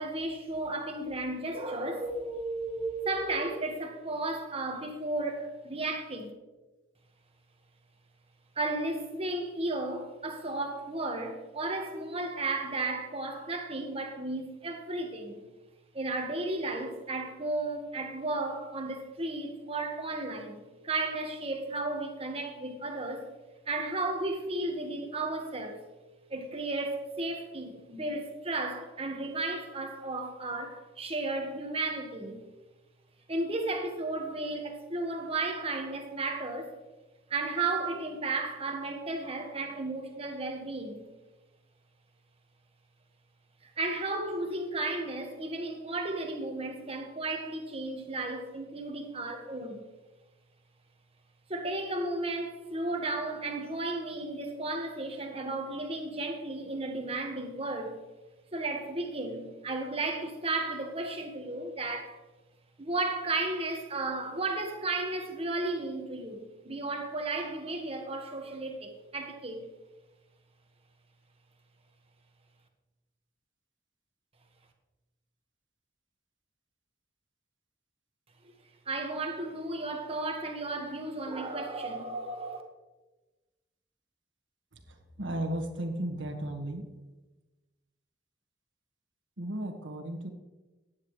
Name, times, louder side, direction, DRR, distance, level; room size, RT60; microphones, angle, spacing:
voice 1, 0.0-6.3 8.5-15.4 15.9-23.2 23.7-25.8 26.3-32.4 33.3-36.7 37.3-41.1 43.6-49.8 51.5-58.0 58.5-62.2 62.8-69.6 78.8-82.6, right 2 dB, 30° right, 1.5 m, -34 dB
voice 2, 85.2-86.8 89.4-90.3, right 1 dB, 80° right, 1.7 m, -34 dB
15.0 x 9.7 x 3.2 m
head